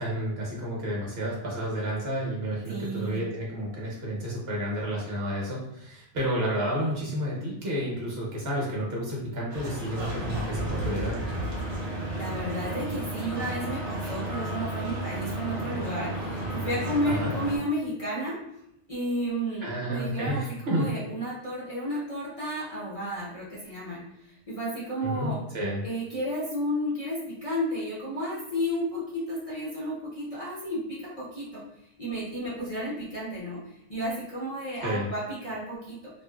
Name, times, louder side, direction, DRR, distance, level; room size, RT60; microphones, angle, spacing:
voice 1, 0.0-11.2 17.0-17.3 19.6-20.9 25.0-25.8 34.8-35.1, equal, 60° right, -4 dB, 1.0 m, -30 dB
voice 2, 2.7-3.3 11.8-18.4 18.9-25.4 25.8-31.6 32.0-33.6 33.9-36.1, equal, 40° left, -8 dB, 0.6 m, -32 dB
sound 1, 9.5-17.6, right 1 dB, 80° right, 1.0 m, -32 dB
2.6 x 2.4 x 2.2 m, 0.79 s
omnidirectional pair, 1.2 m